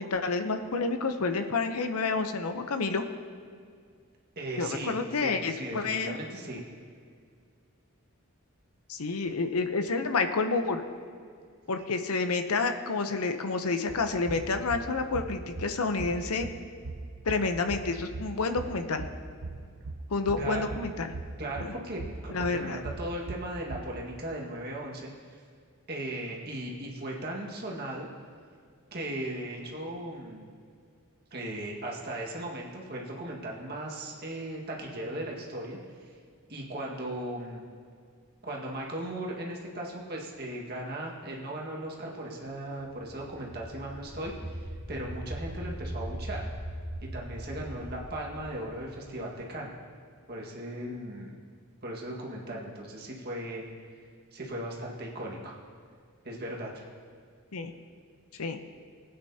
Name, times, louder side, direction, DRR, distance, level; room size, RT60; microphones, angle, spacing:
voice 1, 0.0-3.0 4.6-6.2 8.9-10.8 11.7-16.5 17.2-19.0 20.1-21.1 22.3-22.8 57.5-57.7 58.3-58.6, left 4 dB, 85° left, 7 dB, 0.8 m, -29 dB
voice 2, 4.4-6.6 20.4-20.8 21.4-25.4 25.9-28.1 28.9-30.5 31.3-36.1 36.5-37.6 38.4-46.4 47.0-49.7 50.3-51.4 51.8-53.6 54.3-55.6 56.2-56.9, right 1 dB, 45° right, -2 dB, 1.7 m, -37 dB
sound 1, 13.9-23.8, right 2 dB, 70° right, 0.8 m, -41 dB
sound 2, 42.9-49.6, right 1 dB, 10° right, 1.3 m, -40 dB
20.0 x 8.9 x 2.8 m, 2.1 s
head